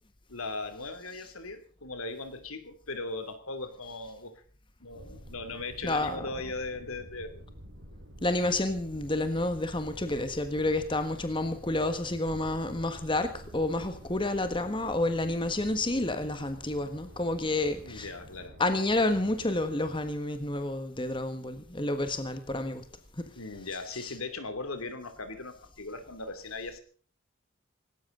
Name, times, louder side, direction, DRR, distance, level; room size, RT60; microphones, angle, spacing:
voice 1, 0.3-4.4 4.8-7.4 17.8-18.6 23.4-26.8, left 3 dB, 80° left, 2.8 m, -38 dB
sound 1, 4.9-20.1, equal, 55° right, 7.8 m, -49 dB
voice 2, 5.8-6.2 8.2-18.1 18.6-22.8 23.2-23.3 23.9-24.1, left 2 dB, 20° left, 1.5 m, -29 dB
19.0 x 17.5 x 3.9 m
head